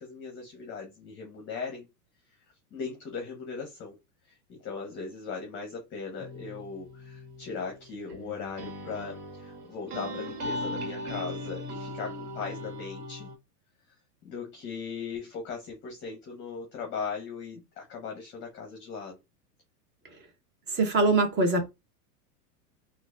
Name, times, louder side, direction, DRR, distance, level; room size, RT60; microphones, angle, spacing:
voice 1, 0.0-1.9 2.7-3.9 4.3-13.3 14.2-19.2, left 5 dB, 25° left, 0.9 m, -38 dB
sound 1, 6.2-13.3, left 1 dB, 70° right, 1.5 m, -39 dB
voice 2, 20.7-21.7, right 3 dB, 25° right, 0.9 m, -23 dB
3.9 x 2.5 x 2.4 m
supercardioid pair, 145°, 46 cm